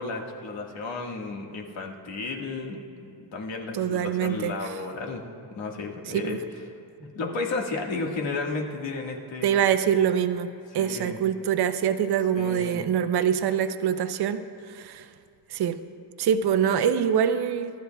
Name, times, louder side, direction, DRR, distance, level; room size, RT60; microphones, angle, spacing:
voice 1, 0.0-5.2 5.5-6.6 7.0-9.6 10.7-11.2 12.3-12.9, left 3 dB, 70° left, 1 dB, 1.7 m, -33 dB
voice 2, 3.7-4.5 6.1-6.4 9.4-14.4 14.7-15.0 15.5-15.8 16.2-17.7, right 8 dB, 55° right, 9 dB, 0.6 m, -24 dB
23.5 x 12.5 x 2.3 m, 2.4 s
cardioid pair, 145°, 46 cm